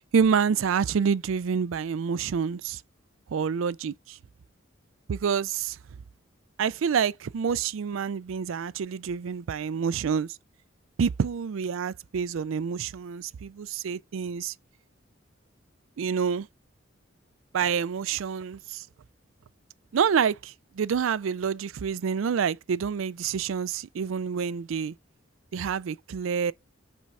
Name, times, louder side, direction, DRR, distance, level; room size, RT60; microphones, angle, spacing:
voice 1, 0.0-2.8 3.3-4.2 5.1-5.8 6.6-10.3 11.0-14.5 16.0-16.5 17.5-18.9 19.9-24.9 25.5-26.5, right 6 dB, 85° right, 0.4 m, -27 dB
5.8 x 4.4 x 5.4 m
head